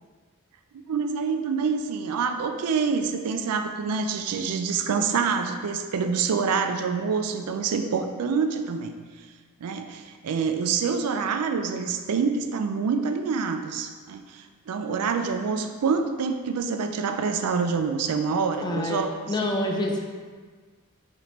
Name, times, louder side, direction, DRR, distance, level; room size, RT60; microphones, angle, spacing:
voice 1, 0.9-8.9 9.6-19.4, right 5 dB, 75° right, 7 dB, 0.4 m, -26 dB
voice 2, 18.6-20.0, left 1 dB, 20° left, 1 dB, 0.5 m, -27 dB
4.9 x 3.4 x 2.9 m, 1.5 s
head